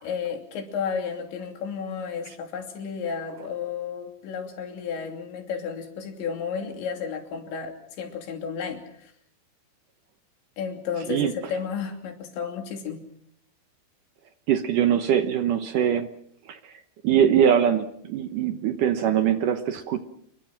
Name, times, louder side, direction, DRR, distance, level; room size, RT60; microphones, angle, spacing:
voice 1, 0.0-9.1 10.6-13.0, left 6 dB, 80° left, 4 dB, 5.2 m, -32 dB
voice 2, 14.5-16.1 16.5-16.6 17.0-20.0, right 9 dB, 70° right, 8 dB, 2.0 m, -22 dB
29.0 x 22.5 x 6.0 m, 0.69 s
omnidirectional pair, 5.1 m